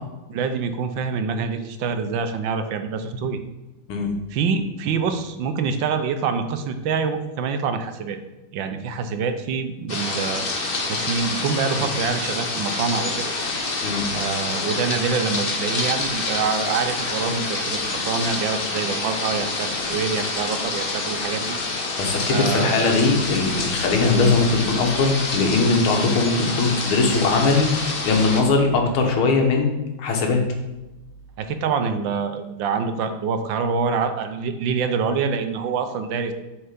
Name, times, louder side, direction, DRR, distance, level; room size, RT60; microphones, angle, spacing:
voice 1, 0.3-3.4 4.3-8.2 8.5-13.3 14.1-21.6 22.3-23.0 28.8-28.9 31.4-36.3, right 5 dB, 70° right, 8 dB, 1.4 m, -26 dB
sound 1, 9.9-28.4, left 3 dB, 45° left, 0.7 m, -27 dB
voice 2, 22.0-27.7 28.1-29.7 30.0-30.4, left 3 dB, 80° left, 3 dB, 2.1 m, -20 dB
8.4 x 4.4 x 5.1 m, 1.0 s
omnidirectional pair, 2.3 m